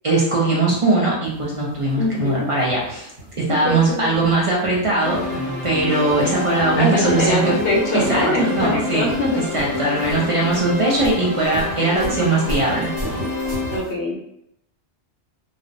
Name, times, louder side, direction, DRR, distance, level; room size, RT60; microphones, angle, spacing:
voice 1, 0.0-3.1 3.5-7.4 7.9-9.0 9.5-12.9, right 2 dB, 45° right, -4 dB, 0.4 m, -20 dB
sound 1, 1.2-13.9, equal, 60° right, 1.3 m, -36 dB
voice 2, 2.0-2.5 3.6-4.2 6.7-9.5 11.9-12.3 13.7-14.2, left 1 dB, 65° left, -2 dB, 0.8 m, -23 dB
sound 2, 5.0-13.8, left 2 dB, 15° left, 0.8 m, -27 dB
2.4 x 2.0 x 2.6 m, 0.76 s
omnidirectional pair, 1.1 m